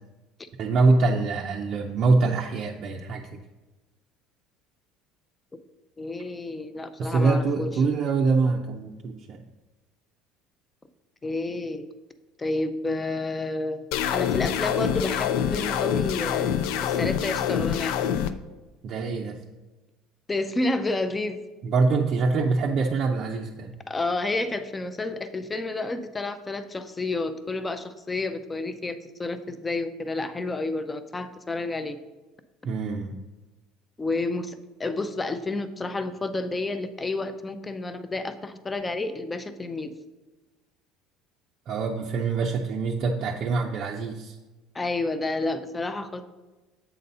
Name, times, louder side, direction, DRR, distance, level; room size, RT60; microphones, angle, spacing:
voice 1, 0.6-3.4 7.0-9.4 18.8-19.4 21.6-23.7 32.6-33.2 41.7-44.4, right 3 dB, 40° right, 1 dB, 0.5 m, -24 dB
voice 2, 6.0-7.7 11.2-11.9 12.4-13.8 14.1-16.6 16.8-18.0 20.3-21.4 23.9-32.0 34.0-39.9 44.7-46.2, left 2 dB, 15° left, 11 dB, 0.4 m, -30 dB
sound 1, 13.9-18.3, left 9 dB, 75° left, 0.4 m, -26 dB
7.7 x 4.0 x 5.3 m, 1.2 s
cardioid pair, 150°, 0 cm